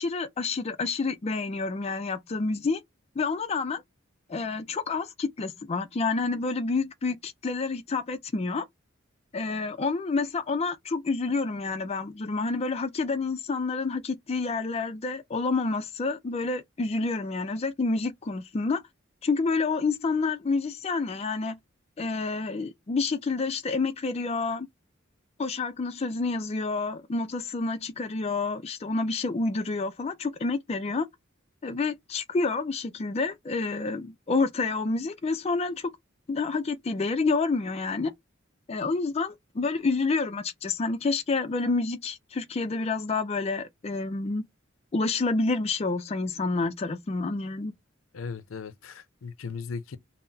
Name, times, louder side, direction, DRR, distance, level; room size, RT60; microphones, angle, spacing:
voice 1, 0.0-2.8 3.2-3.8 4.3-8.7 9.3-18.8 19.2-21.6 22.0-24.7 25.4-31.1 31.6-35.9 36.3-38.1 38.7-44.4 44.9-47.7, left 3 dB, 30° left, 0.4 m, -28 dB
voice 2, 48.1-50.0, left 5 dB, 80° left, 0.5 m, -37 dB
5.5 x 2.0 x 2.6 m
head